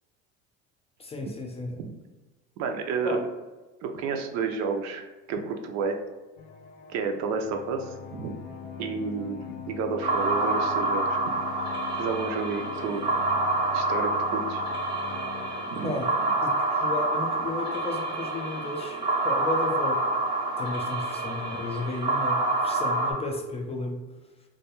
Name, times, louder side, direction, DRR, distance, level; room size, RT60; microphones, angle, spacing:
voice 1, 1.0-1.8 3.0-3.2 15.8-16.1 16.4-20.0 20.6-24.0, left 2 dB, 20° left, 2 dB, 0.3 m, -33 dB
voice 2, 2.6-3.2 3.8-6.0 6.9-8.4 8.8-9.4 9.7-11.2 12.0-13.1 13.7-14.6 15.7-15.9, right 5 dB, 65° right, 5 dB, 0.4 m, -30 dB
sound 1, 6.4-15.5, left 7 dB, 85° left, 0.5 m, -42 dB
sound 2, 10.0-23.1, right 2 dB, 15° right, 0.6 m, -27 dB
2.2 x 2.2 x 2.9 m, 1.2 s
supercardioid pair, 90°, 30 cm